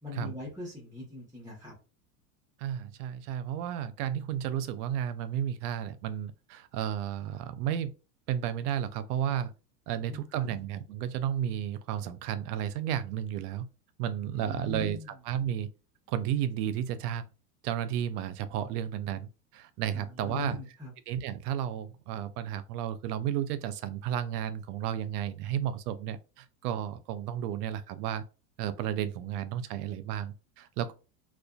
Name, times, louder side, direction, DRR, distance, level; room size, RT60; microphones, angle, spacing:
voice 1, 0.0-1.7 9.9-10.5 14.3-15.2 19.9-20.9, left 3 dB, 10° right, 0.8 m, -41 dB
voice 2, 2.6-7.9 8.3-9.5 9.9-13.7 14.0-15.7 16.1-17.3 17.6-20.6 21.1-28.2 28.6-30.9, right 10 dB, 75° right, 0.6 m, -33 dB
2.4 x 2.3 x 2.3 m
hypercardioid pair, 100°, 47 cm